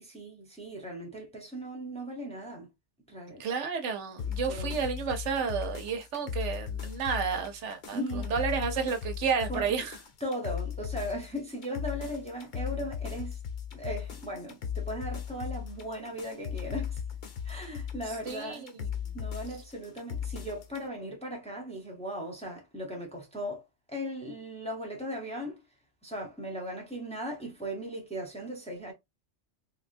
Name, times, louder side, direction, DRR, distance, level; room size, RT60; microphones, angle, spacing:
voice 1, 0.0-2.7 3.1-3.4 4.5-4.8 7.9-8.4 9.5-9.9 10.2-13.4 13.7-17.0 17.4-18.7 19.1-23.6 23.9-25.6 26.0-28.9, equal, 5° left, 0.7 m, -38 dB
voice 2, 3.4-10.0 18.3-19.0, right 6 dB, 80° right, 1.0 m, -31 dB
sound 1, 4.2-20.8, left 8 dB, 50° left, 0.7 m, -37 dB
3.6 x 2.2 x 2.5 m
omnidirectional pair, 1.2 m